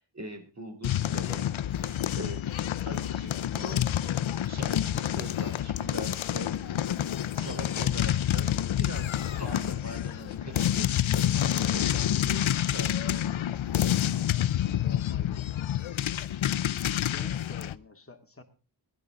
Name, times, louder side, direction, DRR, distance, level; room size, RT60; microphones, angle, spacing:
voice 1, 0.0-1.5 1.8-2.5 2.9-4.1 4.5-6.6 7.3-13.2 16.9-17.3, right 1 dB, 35° right, 6 dB, 3.6 m, -43 dB
sound 1, 0.8-17.7, left 11 dB, 85° left, 0.6 m, -28 dB
Dog, 4.8-15.1, left 5 dB, 50° left, 1.3 m, -52 dB
voice 2, 14.8-16.0 16.8-18.4, left 3 dB, 30° left, 4 dB, 2.3 m, -48 dB
19.0 x 11.5 x 3.7 m, 0.33 s
wide cardioid pair, 90°, 46 cm